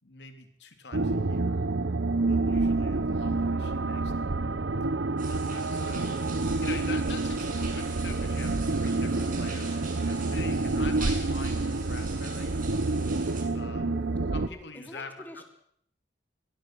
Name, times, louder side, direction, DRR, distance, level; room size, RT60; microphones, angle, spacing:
voice 1, 0.0-1.7 2.3-4.4 5.3-6.3 6.6-12.5 13.5-15.4, left 3 dB, 65° left, 5 dB, 3.5 m, -44 dB
sound 1, 0.9-14.5, right 3 dB, 80° right, 0.9 m, -28 dB
sound 2, 5.2-13.4, right 3 dB, 50° right, 6.9 m, -41 dB
voice 2, 13.7-15.4, left 1 dB, 10° left, 3 dB, 3.1 m, -46 dB
23.0 x 22.0 x 6.4 m, 0.67 s
head